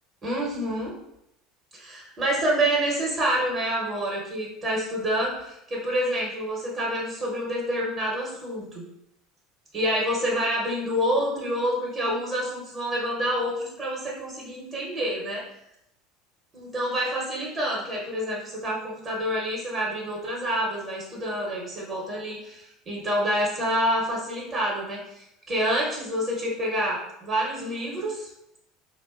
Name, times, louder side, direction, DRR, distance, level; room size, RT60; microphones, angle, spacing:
voice 1, 0.2-0.9 1.7-8.9 9.7-15.4 16.5-28.3, equal, 35° right, -4 dB, 0.8 m, -27 dB
2.6 x 2.1 x 2.3 m, 0.81 s
hypercardioid pair, 85°, 0 cm